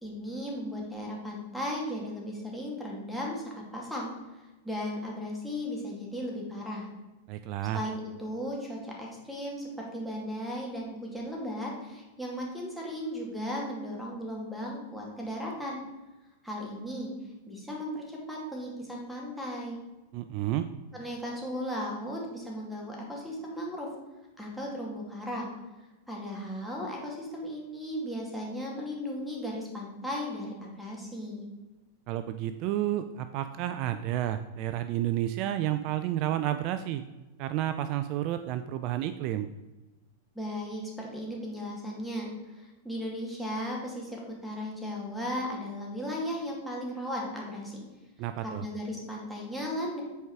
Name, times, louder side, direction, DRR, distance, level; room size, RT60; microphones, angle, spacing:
voice 1, 0.0-3.4 3.7-4.1 4.6-6.9 7.7-15.8 16.4-17.1 17.5-19.8 20.9-23.9 24.4-25.5 26.1-31.4 40.3-47.8 48.4-50.0, equal, ahead, -2 dB, 2.5 m, -36 dB
voice 2, 7.3-7.8 20.1-20.7 32.1-37.0 37.4-39.5 48.2-48.6, right 12 dB, 50° right, 10 dB, 0.4 m, -31 dB
8.2 x 4.7 x 4.8 m, 1.1 s
hypercardioid pair, 110°, 0 cm